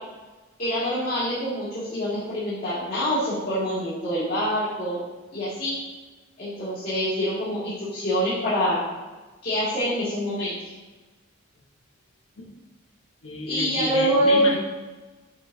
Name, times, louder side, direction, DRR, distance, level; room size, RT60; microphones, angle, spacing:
voice 1, 0.6-5.0 5.3-5.7 6.4-8.8 9.4-10.5 13.4-14.5, equal, 50° left, -13 dB, 2.4 m, -25 dB
voice 2, 13.2-14.6, left 2 dB, 80° left, -1 dB, 1.3 m, -31 dB
9.4 x 5.7 x 2.8 m, 1.2 s
head